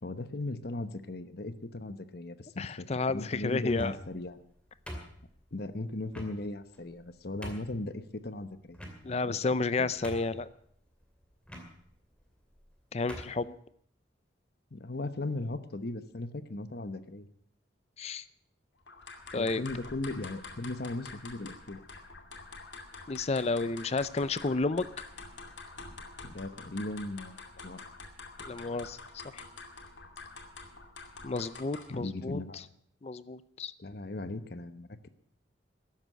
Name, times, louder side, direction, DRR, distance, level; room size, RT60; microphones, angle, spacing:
voice 1, 0.0-4.4 5.5-9.4 9.8-9.9 14.7-17.3 19.3-21.8 26.2-27.8 31.9-32.6 33.8-35.1, left 2 dB, 55° left, 12 dB, 1.0 m, -38 dB
voice 2, 2.6-4.0 9.0-10.5 12.9-13.5 18.0-18.2 19.3-19.6 23.1-24.9 28.4-29.4 31.2-32.6 33.0-33.7, left 3 dB, 35° left, 17 dB, 0.5 m, -31 dB
sound 1, 3.6-4.2 4.9-5.5 6.1-6.3 6.9-7.0 7.4-7.8 8.7-9.3 9.7-9.8 10.0-10.5 11.5-11.7 12.5-12.7 13.1-13.4, equal, 5° left, 2.4 m, -43 dB
sound 2, 18.9-32.0, left 3 dB, 75° left, 2.5 m, -47 dB
13.5 x 11.0 x 7.6 m, 0.66 s
head